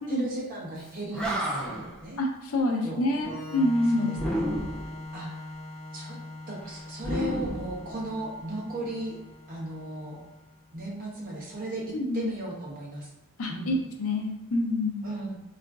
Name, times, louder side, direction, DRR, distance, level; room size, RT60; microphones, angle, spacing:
voice 1, 0.1-2.2 2.8-3.4 3.9-4.4 5.1-5.5 5.9-6.2 6.5-9.2 9.5-10.2 10.7-11.8 12.1-13.1 13.5-13.7 15.0-15.4, right 1 dB, 40° right, -4 dB, 0.8 m, -36 dB
Animal, 0.8-0.9 1.1-2.0 4.1-5.0 7.0-8.3, equal, 5° left, 0.4 m, -31 dB
voice 2, 2.2-4.2 11.9-12.3 13.4-15.0, left 1 dB, 75° left, 2 dB, 0.5 m, -27 dB
Organ, 3.2-10.7, left 2 dB, 20° left, 1.0 m, -42 dB
3.7 x 2.4 x 2.3 m, 0.99 s
head